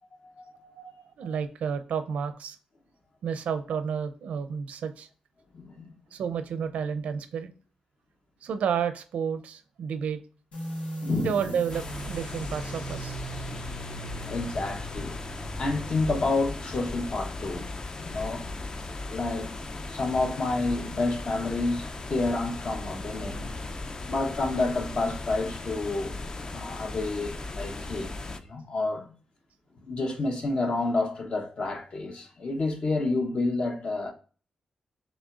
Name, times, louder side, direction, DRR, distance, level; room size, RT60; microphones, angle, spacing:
voice 1, 0.6-2.6 3.2-5.1 6.1-7.5 8.4-10.2 11.2-13.1, right 7 dB, 90° right, 0.5 m, -31 dB
voice 2, 5.5-5.9 11.0-11.4 14.2-15.1 15.6-17.7 18.0-18.5 19.1-19.5 19.9-23.6 24.1-26.1 26.5-29.1 29.8-34.1, left 3 dB, 50° left, 1.0 m, -29 dB
sound 1, 10.5-17.8, right 2 dB, 80° left, 1.7 m, -40 dB
sound 2, 11.7-28.4, left 2 dB, 35° left, 0.5 m, -37 dB
6.1 x 3.4 x 2.5 m
cardioid pair, 95°, 2 cm